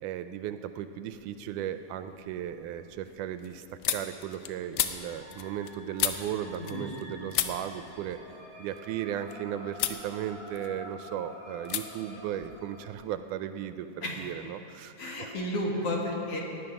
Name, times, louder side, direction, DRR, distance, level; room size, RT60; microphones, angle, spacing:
voice 1, 0.0-8.2 8.6-15.3, right 10 dB, 80° right, 10 dB, 2.0 m, -36 dB
sound 1, 1.1-1.6 2.0-7.0 7.3-9.3 9.7-10.0 10.4-11.1 11.6-11.8 12.1-13.2, left 12 dB, 85° left, 2.4 m, -35 dB
sound 2, 4.8-13.0, equal, 30° left, 4.1 m, -48 dB
voice 2, 6.6-6.9 14.0-14.3 15.0-16.4, left 1 dB, 50° left, -2 dB, 2.4 m, -32 dB
18.0 x 11.0 x 5.9 m, 3.0 s
omnidirectional pair, 3.7 m